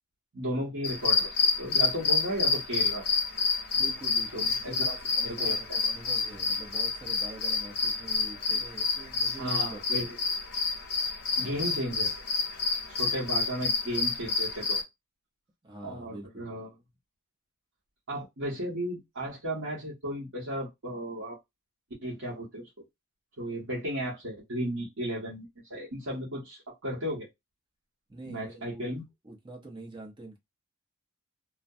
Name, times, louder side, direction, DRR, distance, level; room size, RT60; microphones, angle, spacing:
voice 1, 0.3-3.1 4.3-4.9 5.2-5.8 9.4-10.1 11.4-12.1 12.9-14.8 15.8-16.7 18.1-21.4 22.0-22.7 23.4-27.3 28.3-29.0, equal, 60° right, 0.9 m, -34 dB
sound 1, 0.8-14.8, left 4 dB, 50° left, 0.7 m, -29 dB
voice 2, 3.8-10.1 11.3-11.6 15.6-16.6 28.1-28.8 29.2-30.4, right 2 dB, 20° right, 0.8 m, -45 dB
2.2 x 2.2 x 2.6 m
head